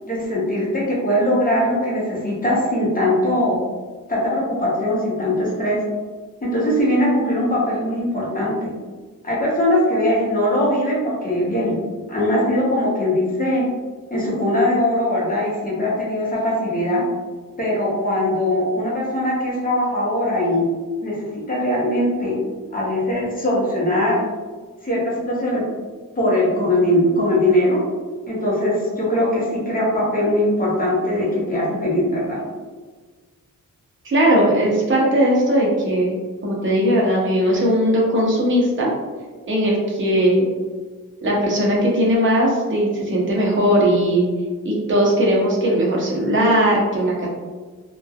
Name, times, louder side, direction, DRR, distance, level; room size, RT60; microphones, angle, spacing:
voice 1, 0.0-3.6 4.1-5.8 6.4-8.7 9.2-11.8 12.1-13.6 14.1-17.0 17.6-20.7 21.0-22.4 22.7-24.2 24.8-25.6 26.2-27.8 28.3-32.4, left 1 dB, 25° left, -5 dB, 0.7 m, -21 dB
voice 2, 34.0-36.1 36.4-38.9 39.5-40.5 41.2-44.3 44.6-47.3, equal, 35° right, -3 dB, 0.7 m, -18 dB
3.0 x 2.2 x 2.2 m, 1.4 s
wide cardioid pair, 145°, 34 cm